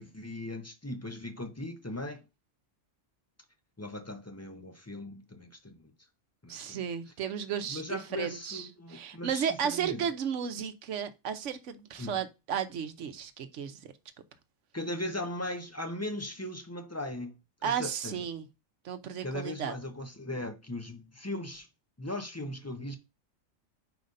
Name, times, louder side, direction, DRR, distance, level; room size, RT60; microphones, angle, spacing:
voice 1, 0.0-2.2 3.8-5.9 6.4-6.8 7.7-10.1 12.0-12.2 14.7-18.3 19.2-21.7 22.0-23.0, left 1 dB, 15° left, 0.6 m, -38 dB
voice 2, 6.5-13.9 17.6-18.5 18.8-19.7, right 8 dB, 75° right, 1.1 m, -34 dB
5.0 x 4.0 x 5.1 m
omnidirectional pair, 1.3 m